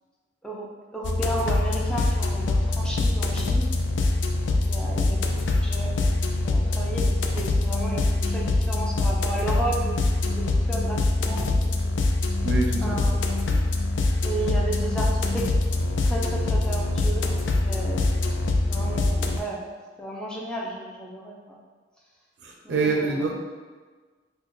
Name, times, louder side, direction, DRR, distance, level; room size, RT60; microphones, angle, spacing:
voice 1, 0.9-3.7 4.5-5.9 6.4-10.0 10.3-11.7 12.8-13.6 14.2-15.5 16.0-18.1 18.7-19.6 20.0-21.6 22.6-23.3, right 2 dB, 5° left, -4 dB, 0.5 m, -33 dB
sound 1, 1.0-19.4, left 2 dB, 80° left, 0.4 m, -24 dB
voice 2, 12.4-13.2 22.4-23.4, right 3 dB, 70° right, 1 dB, 0.5 m, -26 dB
4.2 x 2.2 x 3.1 m, 1.4 s
head